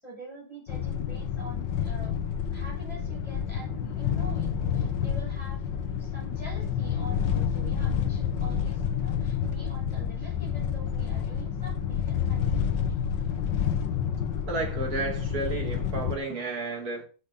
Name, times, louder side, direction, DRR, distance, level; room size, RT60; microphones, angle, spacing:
voice 1, 0.0-2.2 2.5-5.6 6.0-12.6 13.1-13.2, right 1 dB, 15° left, 6.5 m, -46 dB
sound 1, 0.7-16.2, left 8 dB, 85° left, 1.8 m, -29 dB
voice 2, 14.5-17.0, right 3 dB, 55° right, 3.0 m, -32 dB
8.5 x 6.4 x 5.4 m
omnidirectional pair, 1.9 m